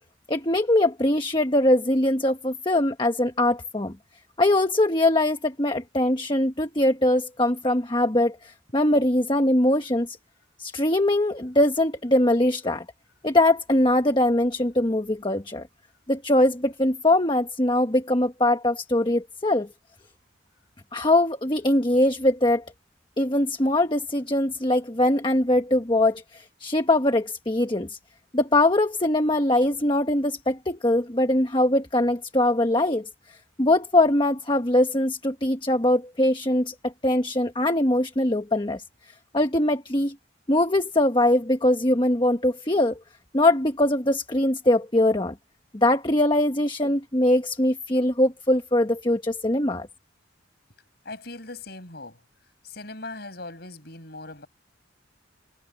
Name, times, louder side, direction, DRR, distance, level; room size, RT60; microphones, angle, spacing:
voice 1, 0.3-4.0 4.4-10.2 10.6-12.8 13.2-15.6 16.1-19.7 20.9-22.6 23.2-28.0 28.3-33.1 33.6-38.8 39.3-40.1 40.5-43.0 43.3-45.3 45.7-49.9, left 1 dB, 25° left, 1.3 m, -22 dB
voice 2, 51.0-52.2 52.6-54.5, left 2 dB, 55° left, 6.6 m, -39 dB
head